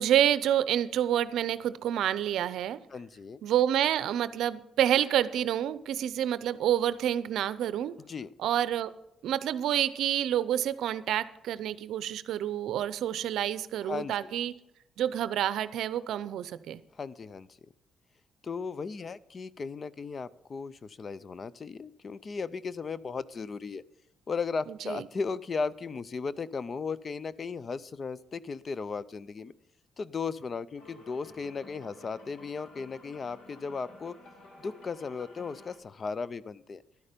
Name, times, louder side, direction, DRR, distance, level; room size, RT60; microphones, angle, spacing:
voice 1, 0.0-2.8 3.4-7.9 8.4-8.9 9.2-14.5 15.0-16.8 24.9-25.1, right 11 dB, 80° right, 15 dB, 0.5 m, -28 dB
voice 2, 2.9-3.4 8.1-8.3 13.8-14.3 17.0-17.5 18.4-23.8 24.3-29.5 30.0-34.2 34.6-36.8, left 5 dB, 40° left, 19 dB, 0.5 m, -36 dB
sound 1, 30.8-35.8, left 2 dB, 75° left, 2.4 m, -52 dB
12.0 x 9.8 x 5.2 m, 0.81 s
cardioid pair, 90°, 0 cm